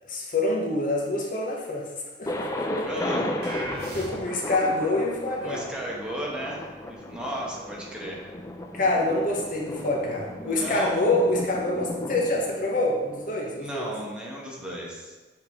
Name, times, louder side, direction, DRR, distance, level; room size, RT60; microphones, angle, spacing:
voice 1, 0.1-1.9 2.2-3.0 3.9-5.7 8.7-13.9, left 2 dB, 50° left, -1 dB, 0.9 m, -26 dB
Thunder, 2.3-14.1, left 1 dB, 20° left, 0.5 m, -35 dB
voice 2, 2.8-3.3 5.4-8.3 10.4-11.1 13.6-15.2, right 1 dB, 5° right, -4 dB, 1.1 m, -35 dB
sound 1, 3.4-4.6, right 1 dB, 60° right, 1.4 m, -37 dB
6.7 x 4.7 x 3.5 m, 1.2 s
head